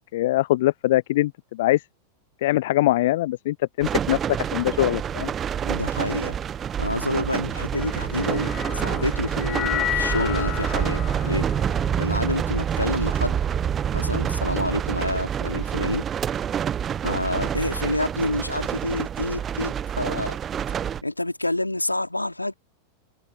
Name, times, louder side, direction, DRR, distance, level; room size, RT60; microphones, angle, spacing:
voice 1, 0.0-1.8 2.4-5.3, left 16 dB, 55° left, 0.3 m, -23 dB
sound 1, 3.8-21.0, right 8 dB, 25° right, 0.5 m, -27 dB
voice 2, 5.6-6.4 6.8-11.5 12.0-13.4 13.9-16.0 17.0-20.4 21.0-22.5, left 1 dB, 85° left, 3.2 m, -28 dB
sound 2, 7.7-14.1, left 13 dB, 35° left, 2.7 m, -33 dB
figure-of-eight pair, 90°, 0 cm